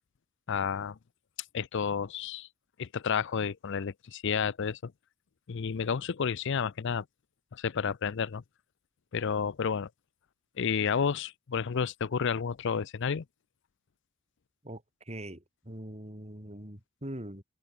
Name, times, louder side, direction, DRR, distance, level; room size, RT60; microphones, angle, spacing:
voice 1, 0.5-1.0 1.5-2.5 2.8-4.9 5.5-7.0 7.5-8.4 9.1-9.9 10.6-13.2, left 6 dB, 55° left, 0.5 m, -31 dB
voice 2, 15.1-17.4, right 1 dB, 30° right, 5.2 m, -42 dB
head